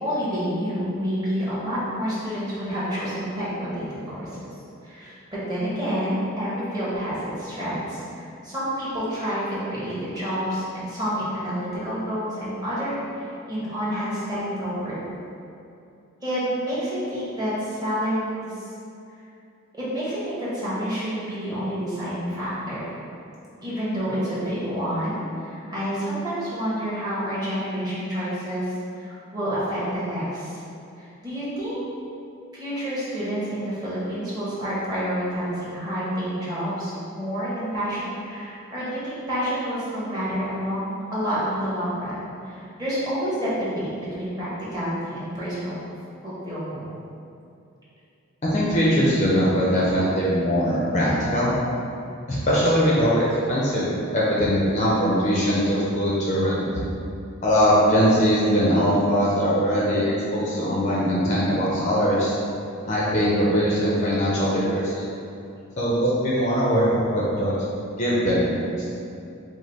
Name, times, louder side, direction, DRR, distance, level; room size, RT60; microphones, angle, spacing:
voice 1, 0.0-4.3 4.8-15.0 16.2-18.7 19.7-22.9 23.6-30.6 31.0-31.9 32.5-42.2 42.4-45.7 46.2-46.8, equal, 20° right, -10 dB, 1.1 m, -28 dB
voice 2, 48.4-51.5 52.3-56.8 57.4-62.3 62.8-65.0 65.8-67.5 68.0-68.9, equal, 30° left, -6 dB, 0.5 m, -21 dB
5.1 x 2.1 x 4.0 m, 2.6 s
head